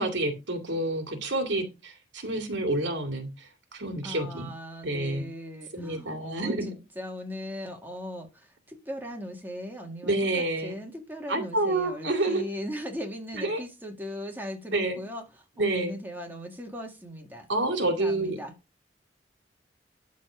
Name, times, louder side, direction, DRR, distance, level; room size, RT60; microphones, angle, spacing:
voice 1, 0.0-4.5 4.8-5.3 5.7-6.7 10.0-10.8 11.3-12.4 13.4-13.6 14.7-15.0 15.6-16.0 17.5-18.4, right 2 dB, 85° right, 2.5 m, -28 dB
voice 2, 4.0-17.5 17.8-18.5, equal, 10° right, 1.9 m, -39 dB
12.0 x 4.2 x 5.0 m
head